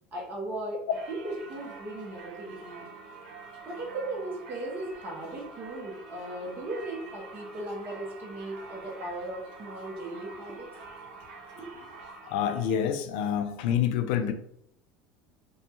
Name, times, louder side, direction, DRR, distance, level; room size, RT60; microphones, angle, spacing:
voice 1, 0.1-2.9 3.6-10.7 11.5-11.9, right 1 dB, 40° right, -2 dB, 0.8 m, -37 dB
Singing / Church bell, 0.9-12.8, right 4 dB, 75° right, 0.7 m, -46 dB
voice 2, 12.3-14.3, left 9 dB, 70° left, 8 dB, 0.4 m, -27 dB
2.7 x 2.2 x 2.8 m, 0.72 s
hypercardioid pair, 80°, 5 cm